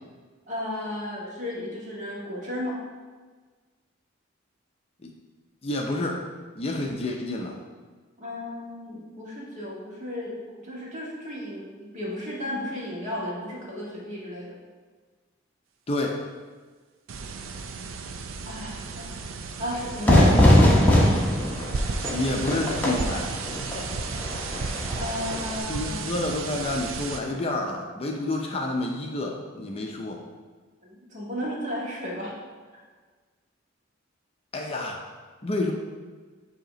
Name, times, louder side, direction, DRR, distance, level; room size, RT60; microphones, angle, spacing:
voice 1, 0.5-2.8 8.2-14.6 18.4-19.2 19.6-20.4 24.9-26.1 30.8-32.4 32.7-32.8, left 1 dB, 40° right, -5 dB, 1.6 m, -34 dB
voice 2, 5.6-6.2 6.5-7.6 15.9-16.2 22.1-23.3 25.7-30.2 34.5-35.0 35.4-35.7, left 2 dB, 30° left, 0 dB, 0.6 m, -29 dB
sound 1, 17.1-27.2, right 4 dB, 85° right, 0.5 m, -34 dB
Fire / Fireworks, 20.0-25.6, left 1 dB, 10° left, 0.9 m, -21 dB
7.6 x 2.9 x 5.1 m, 1.4 s
head